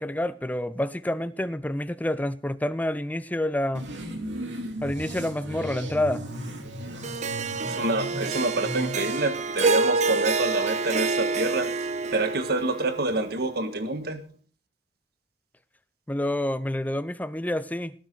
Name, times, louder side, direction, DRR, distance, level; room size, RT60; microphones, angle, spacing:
voice 1, 0.0-3.9 4.8-6.2 16.1-17.9, left 1 dB, 10° left, 0.5 m, -28 dB
sound 1, 3.7-9.2, equal, 75° right, 2.9 m, -36 dB
Harp, 7.0-13.4, right 3 dB, 40° right, 0.8 m, -27 dB
voice 2, 7.7-11.7 12.1-14.2, right 2 dB, 55° right, 1.7 m, -27 dB
19.0 x 10.0 x 4.0 m
head